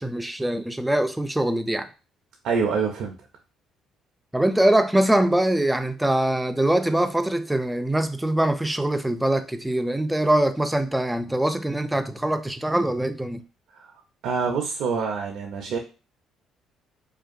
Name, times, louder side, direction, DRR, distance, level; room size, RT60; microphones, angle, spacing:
voice 1, 0.0-1.9 4.3-13.4, right 1 dB, 5° right, 0.3 m, -23 dB
voice 2, 2.4-3.1 13.8-13.9 14.2-15.8, right 5 dB, 75° right, 0.4 m, -26 dB
2.6 x 2.2 x 2.5 m
cardioid pair, 85°, 0 cm